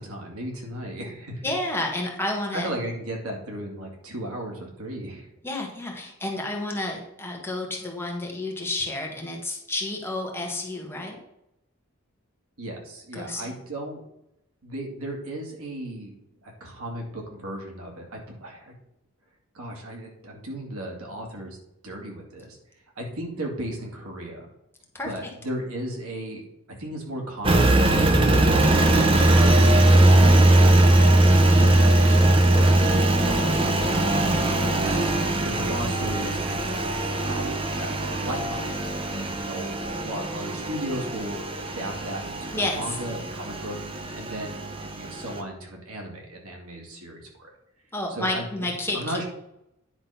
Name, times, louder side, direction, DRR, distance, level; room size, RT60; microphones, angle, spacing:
voice 1, 0.0-1.4 2.5-5.3 12.6-14.0 14.6-16.1 16.4-18.7 19.5-21.6 21.8-22.6 23.0-24.5 25.0-30.9 31.5-33.2 34.8-35.0 35.4-36.7 37.1-47.5 48.1-48.4 48.9-49.2, right 1 dB, 85° right, 0 dB, 2.3 m, -35 dB
voice 2, 1.4-2.7 5.4-11.2 13.1-13.5 24.9-25.1 42.5-43.0 47.9-49.2, left 2 dB, 10° left, 0 dB, 1.4 m, -30 dB
Engine, 27.4-45.4, right 1 dB, 25° right, 0.8 m, -20 dB
9.9 x 3.8 x 5.7 m, 0.82 s
head